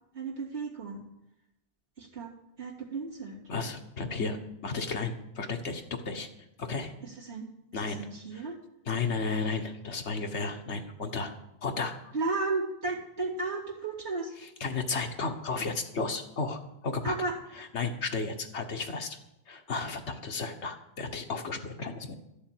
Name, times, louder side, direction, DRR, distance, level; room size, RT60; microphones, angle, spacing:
voice 1, 0.1-1.0 2.0-2.3 2.6-3.4 7.0-8.6 12.1-14.3 17.0-17.4, right 3 dB, 75° right, -2 dB, 3.1 m, -34 dB
voice 2, 3.5-6.3 6.6-6.9 7.7-8.1 8.9-11.3 11.6-11.9 14.6-17.1 17.7-19.2 19.5-22.2, left 4 dB, 80° left, 5 dB, 1.6 m, -33 dB
13.0 x 7.1 x 8.9 m, 0.89 s
omnidirectional pair, 1.1 m